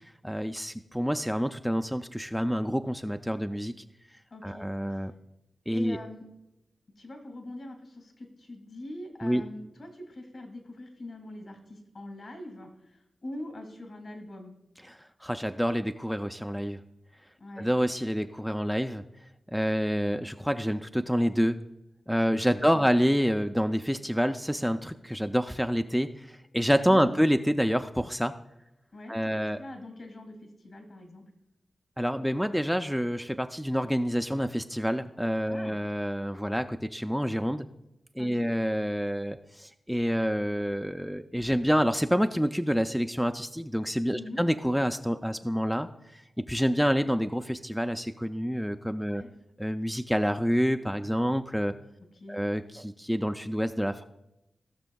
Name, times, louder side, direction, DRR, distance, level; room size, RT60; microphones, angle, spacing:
voice 1, 0.2-3.7 4.4-5.1 5.7-6.0 9.2-9.4 15.2-16.8 17.6-19.0 19.5-21.6 22.1-28.3 29.1-29.6 32.0-37.7 38.2-46.2 46.5-49.2 49.6-51.8 52.3-54.0, equal, ahead, 7 dB, 0.4 m, -27 dB
voice 2, 4.3-5.0 5.7-6.3 6.9-14.5 17.4-17.7 22.6-22.9 26.9-27.2 28.9-31.3 35.5-35.8 38.2-38.5 44.1-44.4 49.0-49.3 52.2-52.4, left 1 dB, 60° left, 6 dB, 2.0 m, -43 dB
17.0 x 6.1 x 2.3 m, 0.90 s
cardioid pair, 55°, 0 cm